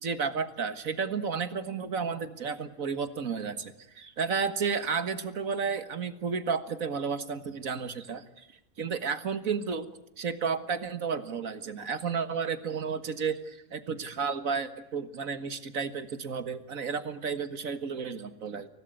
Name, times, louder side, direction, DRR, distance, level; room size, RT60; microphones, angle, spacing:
voice 1, 0.0-8.5 8.8-9.9 10.2-18.7, right 5 dB, 85° right, 10 dB, 2.0 m, -32 dB
25.0 x 17.5 x 9.4 m, 0.93 s
omnidirectional pair, 1.4 m